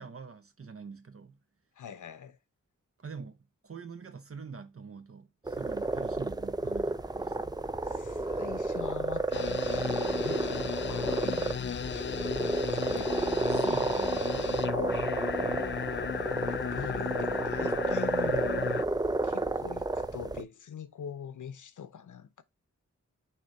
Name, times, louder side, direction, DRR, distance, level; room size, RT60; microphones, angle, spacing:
voice 1, 0.0-1.4 3.0-3.4 3.6-7.6 13.5-14.6, right 5 dB, 50° right, 0.8 m, -45 dB
voice 2, 1.8-2.4 7.8-13.1 16.2-18.8 19.2-22.4, left 7 dB, 85° left, 0.7 m, -43 dB
sound 1, 5.5-20.4, right 2 dB, 15° right, 0.5 m, -31 dB
sound 2, 9.3-18.8, left 7 dB, 40° left, 0.4 m, -35 dB
6.6 x 3.1 x 4.6 m
wide cardioid pair, 75°, 30 cm